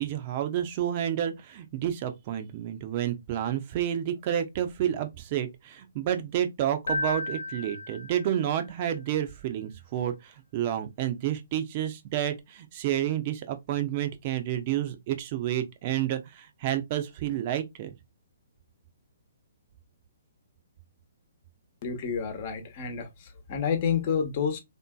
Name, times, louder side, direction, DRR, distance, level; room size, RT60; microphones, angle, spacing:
voice 1, 0.0-17.9, right 11 dB, 40° right, 0.6 m, -30 dB
Keyboard (musical), 6.9-8.7, left 3 dB, 75° left, 0.3 m, -33 dB
voice 2, 21.8-24.6, left 7 dB, 40° left, 0.9 m, -29 dB
3.5 x 2.7 x 2.3 m
figure-of-eight pair, 130°, 0 cm